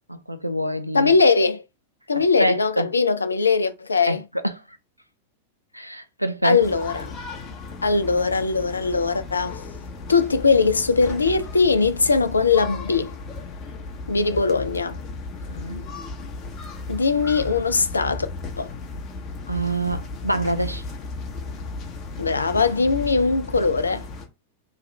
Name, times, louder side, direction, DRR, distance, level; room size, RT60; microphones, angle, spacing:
voice 1, 0.1-1.1 2.1-2.9 4.1-4.2 4.4-4.5 5.7-6.6 14.1-14.3 15.5-15.8 19.5-20.8, right 1 dB, 90° right, 0.3 m, -26 dB
voice 2, 0.9-1.6 2.1-4.2 6.4-7.1 7.8-9.6 10.1-13.1 14.1-15.0 16.9-18.3 18.6-18.7 22.2-24.0, left 4 dB, 75° left, 0.3 m, -20 dB
sound 1, 6.6-24.3, left 3 dB, 35° left, 0.8 m, -35 dB
3.1 x 2.3 x 3.1 m
figure-of-eight pair, 90°, 0 cm